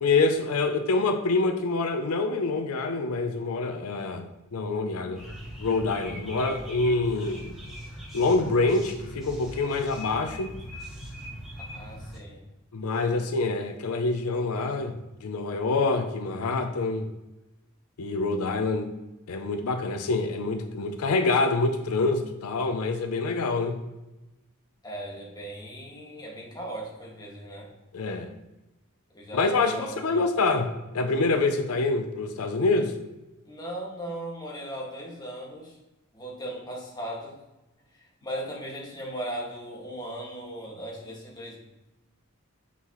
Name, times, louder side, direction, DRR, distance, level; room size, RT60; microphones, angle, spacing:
voice 1, 0.0-5.3 5.6-7.5 8.1-10.5 12.7-14.9 15.2-17.1 18.0-18.9 19.3-23.8 27.9-28.3 29.3-33.0, left 3 dB, 80° left, 7 dB, 0.5 m, -26 dB
sound 1, 5.2-12.2, equal, ahead, 2.1 m, -41 dB
voice 2, 11.7-12.4 13.0-13.2 24.8-27.7 29.1-30.2 33.4-35.8 36.1-37.4 37.9-41.6, right 1 dB, 20° left, -3 dB, 1.8 m, -38 dB
6.0 x 5.6 x 3.0 m, 1.0 s
head